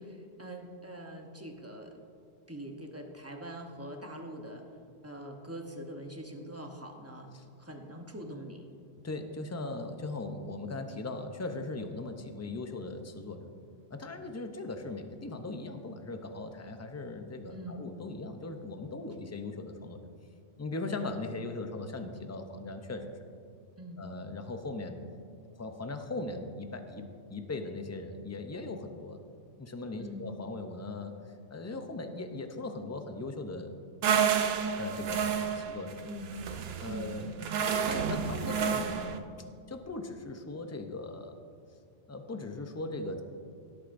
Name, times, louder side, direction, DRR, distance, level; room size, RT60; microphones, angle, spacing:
voice 1, 0.0-2.1 2.5-4.6 5.0-7.3 7.6-8.7 17.5-17.8 23.8-24.0 30.0-30.3 36.0-36.3 36.9-37.2, equal, 15° right, 2 dB, 0.8 m, -43 dB
voice 2, 9.0-13.5 13.9-20.1 20.6-23.2 24.0-25.0 25.6-29.2 29.6-33.7 34.7-36.0 36.8-37.3 37.8-39.2 39.7-41.4 42.1-43.2, left 2 dB, 20° left, 6 dB, 0.4 m, -39 dB
sound 1, 34.0-39.2, right 7 dB, 65° right, 0.8 m, -30 dB
17.0 x 8.3 x 2.6 m, 2.4 s
omnidirectional pair, 1.2 m